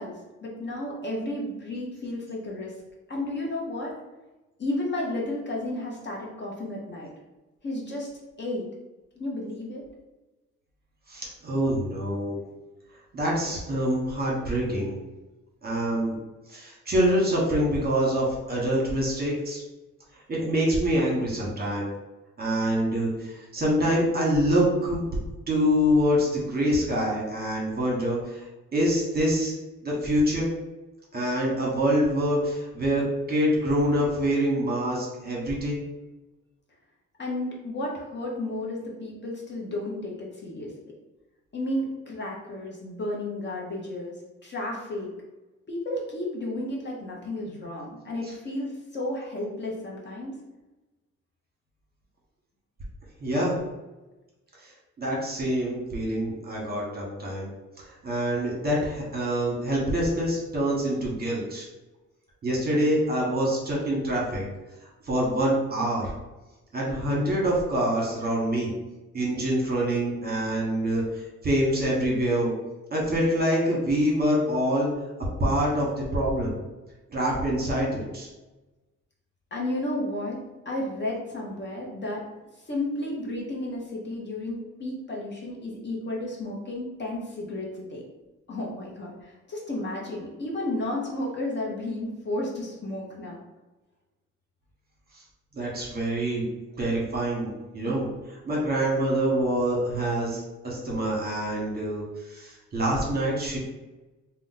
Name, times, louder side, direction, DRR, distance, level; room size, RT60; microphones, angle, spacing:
voice 1, 0.0-2.7 3.1-3.9 4.6-7.1 7.6-8.1 8.4-8.6 9.2-9.8 37.2-40.7 41.5-44.1 44.4-45.1 45.7-50.3 79.5-80.4 80.6-82.2 82.6-88.0 88.5-93.4, left 1 dB, 35° left, -3 dB, 0.8 m, -32 dB
voice 2, 11.1-12.4 13.1-15.0 15.6-16.2 16.5-19.6 20.3-21.9 22.4-25.0 25.5-28.4 28.7-29.5 29.8-30.5 31.1-33.0 33.3-35.8 53.2-53.6 55.0-57.5 58.0-61.7 62.4-64.4 65.1-66.1 66.7-68.7 69.1-71.0 71.4-72.5 72.9-74.9 75.4-76.5 77.1-78.3 95.5-96.5 96.8-98.1 98.4-102.0 102.3-103.6, equal, 30° right, -3 dB, 1.1 m, -25 dB
2.5 x 2.2 x 3.9 m, 1.1 s
cardioid pair, 90°, 30 cm